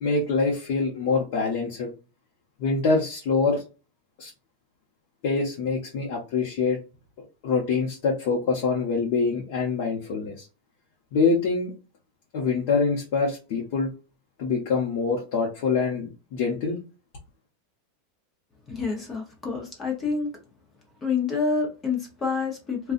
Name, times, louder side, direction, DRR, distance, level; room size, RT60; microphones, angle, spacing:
voice 1, 0.0-1.9 2.6-3.6 4.2-4.3 5.2-6.8 7.4-10.5 11.1-11.7 12.3-13.9 14.4-16.8, left 4 dB, 50° left, -2 dB, 0.8 m, -25 dB
voice 2, 18.7-20.3 21.0-22.9, left 5 dB, 15° left, 1 dB, 0.8 m, -27 dB
3.8 x 2.3 x 2.5 m, 0.31 s
supercardioid pair, 165°, 0 cm